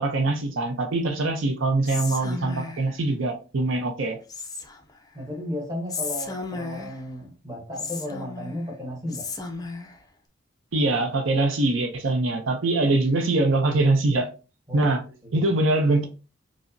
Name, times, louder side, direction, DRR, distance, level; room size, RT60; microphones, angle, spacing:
voice 1, 0.0-4.2 10.7-14.3 14.7-15.0 15.3-16.1, right 2 dB, 70° right, 0.6 m, -23 dB
Whispering, 1.8-2.9 4.3-5.0 5.9-7.1 7.8-8.7 9.1-10.0, left 4 dB, 20° left, 0.4 m, -34 dB
voice 2, 5.1-9.3 14.7-14.9 15.2-15.5, left 1 dB, 15° right, 0.9 m, -34 dB
4.9 x 2.0 x 2.5 m
head